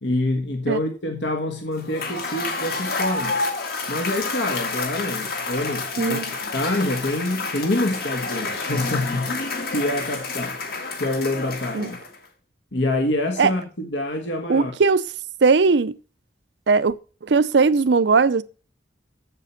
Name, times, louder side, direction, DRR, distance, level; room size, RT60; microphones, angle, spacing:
voice 1, 0.0-3.4 3.9-10.6 11.0-12.0 12.7-14.7, left 1 dB, 75° left, 1.5 m, -26 dB
Cheering / Applause / Crowd, 1.8-12.2, left 3 dB, 55° left, 1.8 m, -29 dB
voice 2, 14.5-15.0 15.4-15.9 16.7-16.9 17.2-18.4, right 4 dB, 70° right, 0.5 m, -18 dB
7.6 x 7.5 x 5.7 m
head